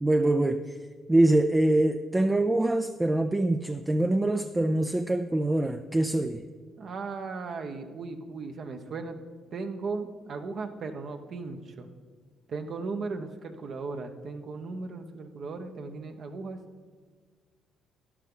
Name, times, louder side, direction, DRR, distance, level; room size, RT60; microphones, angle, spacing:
voice 1, 0.0-0.8 1.1-6.4, right 1 dB, 15° right, 8 dB, 0.4 m, -24 dB
voice 2, 6.8-9.2 9.5-11.9 12.5-16.6, right 4 dB, 55° right, 6 dB, 1.1 m, -36 dB
13.0 x 10.5 x 3.9 m, 1.5 s
cardioid pair, 85°, 0 cm